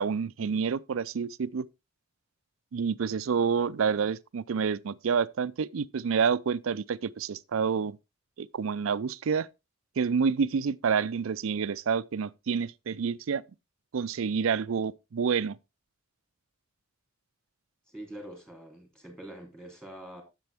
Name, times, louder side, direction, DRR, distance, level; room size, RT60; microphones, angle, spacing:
voice 1, 0.0-1.7 2.7-8.0 8.4-9.5 10.0-13.4 13.9-15.6, right 6 dB, 75° right, 0.4 m, -28 dB
voice 2, 17.9-20.2, right 1 dB, 5° left, 3.2 m, -45 dB
10.5 x 7.6 x 3.5 m
head